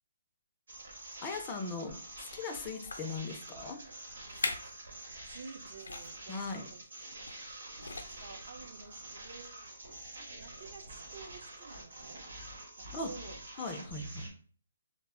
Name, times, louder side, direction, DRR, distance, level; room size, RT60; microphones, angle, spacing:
sound 1, 0.7-14.3, right 2 dB, 80° right, 0.9 m, -47 dB
voice 1, 1.2-3.8 6.3-6.7 12.9-13.1 13.6-14.3, left 3 dB, 20° left, 4 dB, 0.4 m, -39 dB
sound 2, 2.0-2.2 2.7-3.2 3.8-3.9 4.3-4.8 5.1-5.3 5.8-6.2 7.2-7.5 7.8-8.4 9.0-9.1, left 3 dB, 85° left, 0.4 m, -40 dB
voice 2, 5.3-6.7 7.9-9.7 10.2-12.2 12.8-13.4, right 4 dB, 50° right, 5 dB, 0.5 m, -51 dB
2.0 x 2.0 x 3.5 m, 0.43 s
hypercardioid pair, 155°, 0 cm